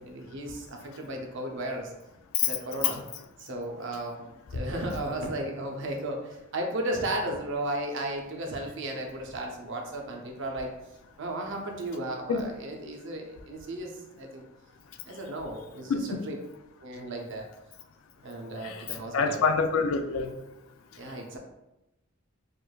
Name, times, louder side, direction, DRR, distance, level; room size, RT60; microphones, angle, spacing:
voice 1, 0.0-1.9 2.4-3.0 3.4-10.7 11.2-14.4 15.0-16.4 16.8-17.5 18.2-19.5 21.0-21.4, right 1 dB, 65° right, 2 dB, 0.6 m, -35 dB
voice 2, 15.9-16.2 18.6-18.8 19.1-20.3, left 5 dB, 90° left, 8 dB, 0.4 m, -26 dB
4.6 x 2.5 x 2.3 m, 0.94 s
head